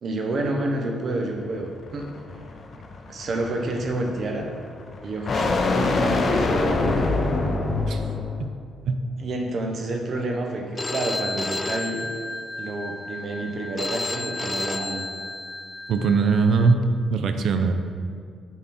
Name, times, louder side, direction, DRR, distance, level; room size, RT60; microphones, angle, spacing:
voice 1, 0.0-2.1 3.1-4.5 5.0-5.5 5.7-7.1 9.2-12.0 12.6-15.0, right 2 dB, 50° right, 2 dB, 1.1 m, -29 dB
sound 1, 1.4-8.4, left 3 dB, 45° left, 0.7 m, -25 dB
Telephone, 10.8-16.7, left 2 dB, 20° left, 0.4 m, -32 dB
voice 2, 15.9-16.8 17.1-17.7, right 4 dB, 70° right, 7 dB, 0.6 m, -20 dB
9.2 x 4.1 x 4.3 m, 2.1 s
cardioid pair, 90°, 0 cm